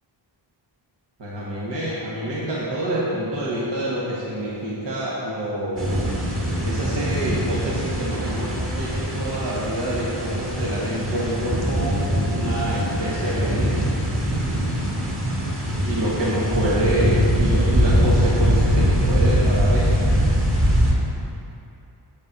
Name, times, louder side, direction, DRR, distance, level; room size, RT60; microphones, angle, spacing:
voice 1, 1.2-6.1 6.6-13.9 15.8-20.0, right 1 dB, 70° right, -7 dB, 1.6 m, -27 dB
sound 1, 5.8-20.9, equal, 30° right, 1.7 m, -22 dB
7.6 x 7.3 x 5.3 m, 2.7 s
wide cardioid pair, 125°, 45 cm